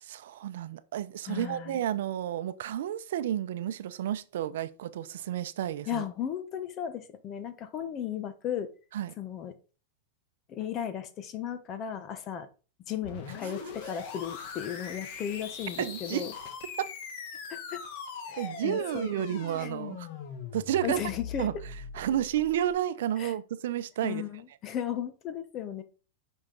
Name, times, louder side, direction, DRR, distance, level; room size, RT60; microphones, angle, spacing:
voice 1, 0.0-6.0 8.9-9.2 15.8-16.3 16.8-16.9 18.4-20.1 20.5-21.0 21.4-21.5 21.9-24.2, right 11 dB, 75° right, 0.6 m, -31 dB
voice 2, 1.3-1.8 5.9-8.7 9.2-9.5 10.5-12.5 12.9-16.3 17.5-17.8 18.3-19.1 19.6-19.7 20.8-21.5 23.2-23.3 24.0-25.8, left 9 dB, 30° left, 1.0 m, -35 dB
sound 1, 13.0-22.7, left 5 dB, 50° left, 1.9 m, -41 dB
8.8 x 5.6 x 3.9 m
supercardioid pair, 150°, 0 cm